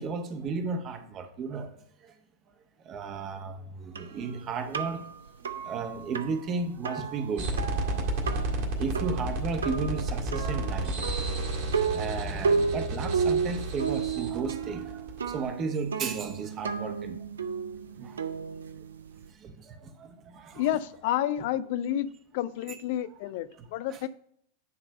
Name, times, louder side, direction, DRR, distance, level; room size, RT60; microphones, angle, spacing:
voice 1, 0.0-2.1 2.8-5.1 5.4-7.9 8.3-8.4 8.8-11.0 11.7-17.2 18.0-18.3 19.3-20.6 22.7-22.8 23.9-24.0, right 4 dB, 30° right, 6 dB, 1.1 m, -34 dB
sound 1, 3.9-19.3, right 5 dB, 70° right, 0.5 m, -33 dB
sound 2, 7.4-15.5, right 2 dB, 50° right, 1.9 m, -32 dB
voice 2, 20.6-24.1, left 12 dB, 50° left, 14 dB, 0.4 m, -30 dB
9.5 x 3.3 x 5.2 m, 0.67 s
figure-of-eight pair, 90°, 0 cm